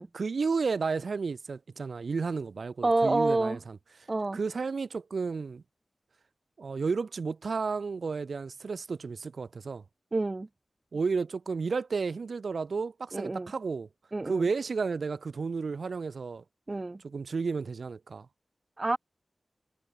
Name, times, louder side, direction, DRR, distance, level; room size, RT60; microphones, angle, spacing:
voice 1, 0.1-3.8 4.3-5.6 6.6-9.8 10.9-13.9 14.2-16.4 17.0-18.3, right 4 dB, 70° right, 1.3 m, -32 dB
voice 2, 2.8-3.6 4.1-4.4 10.1-10.5 13.1-13.5 14.1-14.5 16.7-17.0 18.8-19.0, right 2 dB, 35° right, 0.6 m, -28 dB
wide cardioid pair, 100°, 0 cm